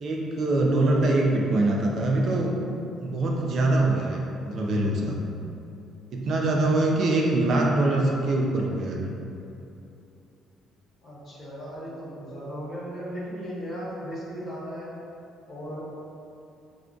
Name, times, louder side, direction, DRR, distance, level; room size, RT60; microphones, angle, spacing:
voice 1, 0.0-2.5 3.0-5.2 6.1-9.1, right 2 dB, 50° right, -1 dB, 0.3 m, -23 dB
voice 2, 7.0-7.5 11.0-14.9 15.5-15.8, equal, 35° left, -8 dB, 1.0 m, -37 dB
2.4 x 2.3 x 3.6 m, 2.7 s
cardioid pair, 120°, 0 cm